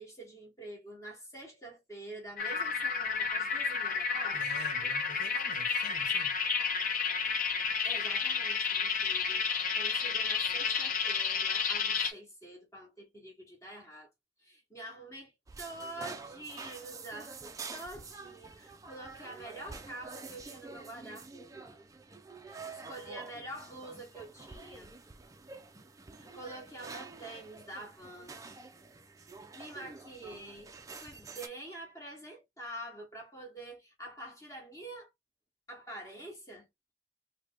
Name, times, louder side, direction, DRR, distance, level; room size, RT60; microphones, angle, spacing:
voice 1, 0.0-4.5 7.8-9.5 9.7-14.1 14.4-15.3 15.6-21.8 22.4-24.9 26.2-28.6 29.5-30.7 31.0-35.1 35.7-36.7, right 1 dB, 15° left, 1.1 m, -46 dB
sound 1, 2.4-12.1, left 6 dB, 45° left, 0.5 m, -31 dB
voice 2, 4.3-6.3, left 2 dB, 75° left, 0.8 m, -47 dB
sound 2, 15.5-31.5, right 4 dB, 15° right, 0.3 m, -48 dB
3.2 x 2.1 x 3.4 m
head